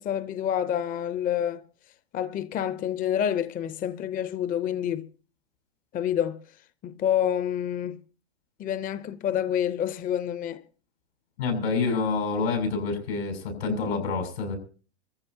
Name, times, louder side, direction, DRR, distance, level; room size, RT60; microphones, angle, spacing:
voice 1, 0.0-1.6 2.1-5.1 5.9-6.4 6.8-8.0 8.6-10.6, left 10 dB, 25° left, 0.7 m, -28 dB
voice 2, 11.4-14.6, left 4 dB, 85° left, 6.7 m, -27 dB
28.5 x 14.5 x 2.8 m
supercardioid pair, 120°, 32 cm